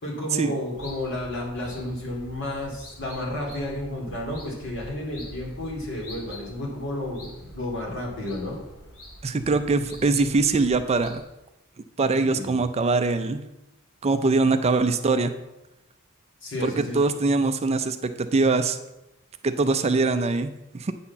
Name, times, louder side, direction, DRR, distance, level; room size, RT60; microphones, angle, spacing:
voice 1, 0.0-8.6 12.2-12.6 16.4-17.0, left 1 dB, 60° left, -2 dB, 2.9 m, -32 dB
sound 1, 0.7-11.2, equal, 75° left, 3.0 m, -45 dB
voice 2, 9.2-11.2 12.0-13.4 14.0-15.3 16.6-18.8 19.4-20.9, right 3 dB, 30° right, 9 dB, 0.4 m, -23 dB
8.7 x 4.2 x 7.0 m, 0.95 s
head